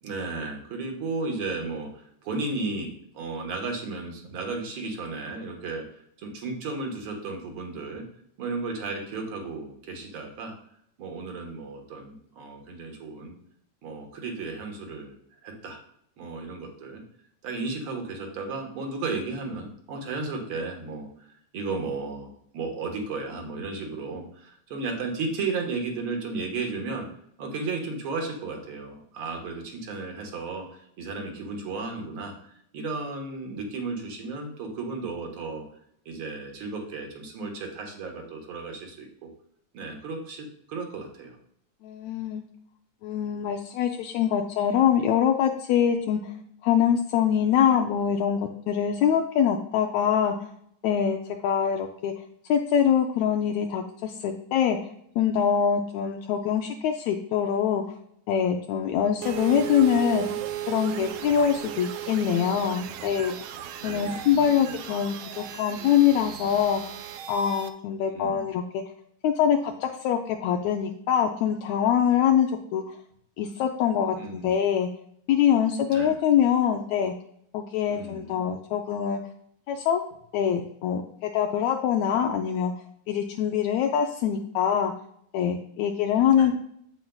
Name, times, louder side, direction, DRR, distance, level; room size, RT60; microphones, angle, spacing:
voice 1, 0.0-5.8 6.2-8.0 8.4-10.6 11.0-13.4 13.8-15.2 15.4-15.8 16.2-17.0 17.4-27.1 27.4-35.6 36.1-39.3 39.7-41.4 63.8-65.0 68.0-68.5 74.1-74.6 75.9-76.2 77.9-78.5 86.3-86.5, right 3 dB, 55° right, 2 dB, 1.9 m, -34 dB
voice 2, 41.8-42.4 43.0-46.3 46.6-50.3 50.8-51.2 51.4-52.1 52.5-54.8 55.2-58.0 58.3-60.2 60.7-63.4 63.8-67.0 67.3-68.8 69.2-72.8 73.4-74.9 75.3-77.1 77.5-79.2 79.7-80.0 80.3-82.7 83.1-84.9 85.3-86.5, left 8 dB, 80° left, 3 dB, 1.8 m, -24 dB
sound 1, 59.2-67.7, right 11 dB, 85° right, 1.4 m, -36 dB
8.2 x 7.8 x 2.3 m, 0.71 s
omnidirectional pair, 3.3 m